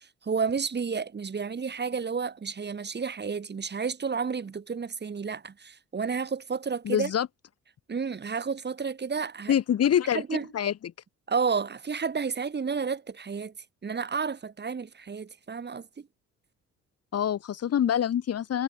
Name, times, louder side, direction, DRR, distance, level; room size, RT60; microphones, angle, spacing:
voice 1, 0.0-7.1 7.9-9.5 10.1-10.5 11.3-13.5 13.8-16.1, right 5 dB, 35° right, 2.6 m, -31 dB
voice 2, 6.8-7.3 9.5-10.2 10.5-10.7 17.1-18.6, left 9 dB, 55° left, 1.4 m, -25 dB
cardioid pair, 90°, 30 cm